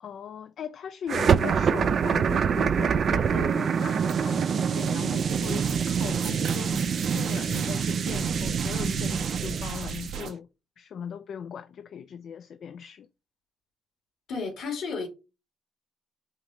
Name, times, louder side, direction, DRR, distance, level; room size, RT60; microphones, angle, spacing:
voice 1, 0.0-10.5 10.8-13.1, left 8 dB, 65° left, 0.3 m, -39 dB
sound 1, 1.1-10.2, right 7 dB, 55° right, 0.3 m, -26 dB
sound 2, 4.1-4.2 4.7-5.8 6.2-7.7 8.2-8.3, right 7 dB, 70° right, 0.8 m, -40 dB
sound 3, 5.3-10.3, right 5 dB, 85° right, 1.2 m, -38 dB
voice 2, 14.3-15.1, left 4 dB, 80° left, 1.9 m, -32 dB
5.0 x 2.6 x 2.9 m
cardioid pair, 90°, 0 cm